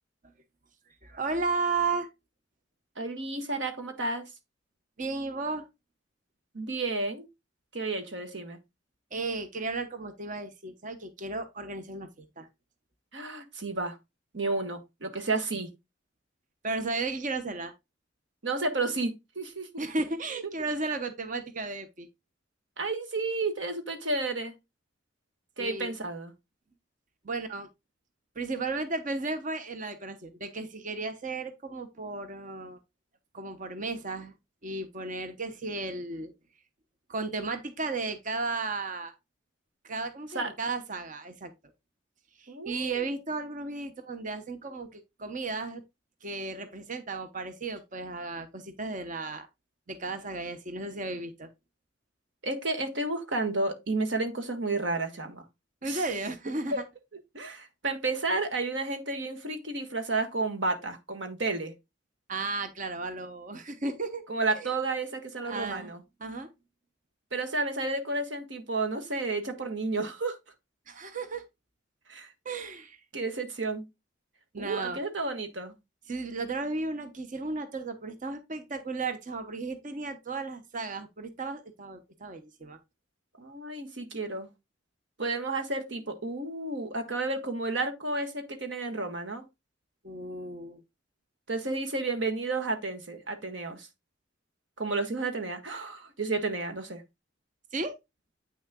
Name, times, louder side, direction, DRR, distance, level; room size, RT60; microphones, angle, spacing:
voice 1, 1.0-2.1 5.0-5.6 9.1-12.5 16.6-17.7 19.8-22.1 25.6-25.9 27.2-27.7 28.4-32.8 33.3-34.3 34.6-36.3 37.1-39.1 39.8-41.5 42.4-45.8 46.2-49.5 49.9-51.5 55.8-56.7 62.3-64.2 64.5-64.7 65.4-65.9 66.2-66.5 70.9-71.4 72.4-73.0 74.5-75.0 76.1-82.8 90.0-90.8 97.7-97.9, right 3 dB, 45° right, 0.9 m, -34 dB
voice 2, 3.0-4.3 6.5-7.3 7.7-8.6 13.1-14.0 14.3-15.7 18.4-19.7 22.8-24.5 25.6-26.3 40.3-40.5 42.5-43.1 52.4-55.4 55.8-56.1 56.7-56.8 57.3-61.7 64.3-66.0 67.3-70.4 72.1-72.3 73.1-73.8 74.6-75.7 83.4-84.5 85.2-89.4 91.5-93.9 94.8-97.0, right 3 dB, 70° right, 1.6 m, -31 dB
8.6 x 6.3 x 2.2 m
head